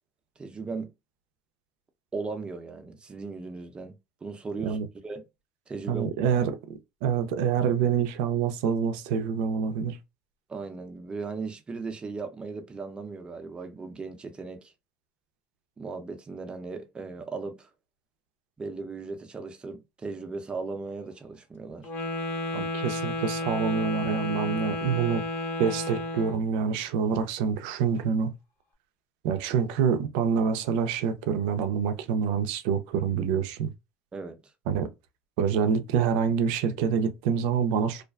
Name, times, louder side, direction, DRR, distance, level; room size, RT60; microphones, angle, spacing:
voice 1, 0.4-0.9 2.1-4.8 5.0-5.3 5.7-6.1 10.5-14.7 15.8-17.7 18.6-21.9 34.1-34.4, right 4 dB, 20° right, 0.6 m, -37 dB
voice 2, 5.9-6.6 7.0-10.0 22.5-25.2 25.6-28.3 29.2-33.7 34.7-34.9 35.4-38.0, right 7 dB, 80° right, 0.5 m, -26 dB
Wind instrument woodwind instrument, 21.8-26.4, left 2 dB, 50° left, 1.0 m, -32 dB
2.4 x 2.3 x 2.3 m
supercardioid pair, 105°, 4 cm